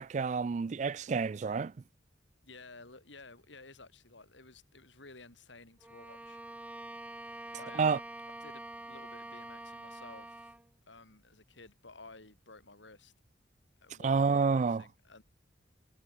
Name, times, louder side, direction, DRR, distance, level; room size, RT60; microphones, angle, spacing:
voice 1, 0.0-1.7 7.8-8.0 14.0-14.8, right 5 dB, 40° right, 0.3 m, -29 dB
voice 2, 2.4-6.4 7.5-8.0 8.4-10.6 10.9-13.1 13.8-15.2, left 3 dB, 85° left, 4.4 m, -53 dB
Bowed string instrument, 5.8-10.7, right 1 dB, 10° right, 0.7 m, -46 dB
head